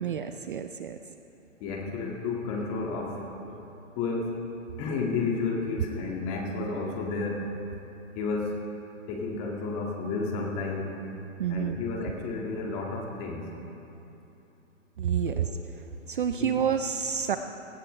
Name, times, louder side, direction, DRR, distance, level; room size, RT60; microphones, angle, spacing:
voice 1, 0.0-1.0 11.4-11.8 15.0-15.5 16.1-17.4, right 8 dB, 40° right, 8 dB, 0.5 m, -28 dB
voice 2, 1.6-3.6 4.0-4.4 4.8-7.5 8.2-8.6 9.1-11.0 11.5-13.5 15.3-15.5 16.4-16.6, left 3 dB, 25° left, -1 dB, 1.9 m, -32 dB
19.0 x 17.0 x 3.3 m, 2.9 s
hypercardioid pair, 160°, 39 cm